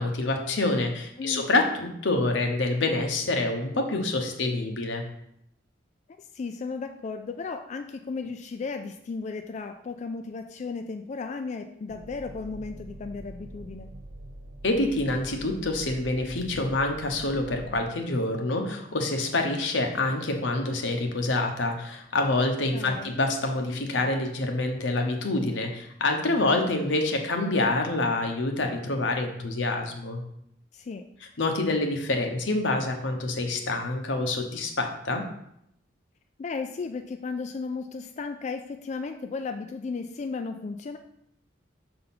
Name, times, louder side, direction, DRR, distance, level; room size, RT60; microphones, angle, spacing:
voice 1, 0.0-5.0 14.6-30.2 31.4-35.2, left 2 dB, 85° left, 3 dB, 1.0 m, -27 dB
voice 2, 6.2-13.9 22.7-23.1 30.7-31.0 36.4-41.0, left 4 dB, 40° left, 6 dB, 0.3 m, -35 dB
sound 1, 11.9-17.9, right 1 dB, 50° right, 0.8 m, -44 dB
6.6 x 3.9 x 4.1 m, 0.75 s
head